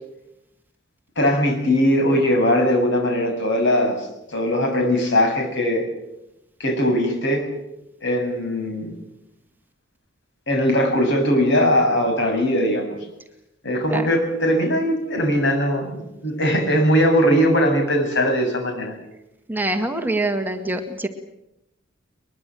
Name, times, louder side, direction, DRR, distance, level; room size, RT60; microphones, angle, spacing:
voice 1, 1.2-5.8 6.6-7.5 8.0-8.9 10.5-13.0 13.6-18.9, equal, 65° left, 4 dB, 7.2 m, -20 dB
voice 2, 19.5-21.1, right 2 dB, 10° right, 5 dB, 1.9 m, -24 dB
22.5 x 22.0 x 7.8 m, 0.88 s
head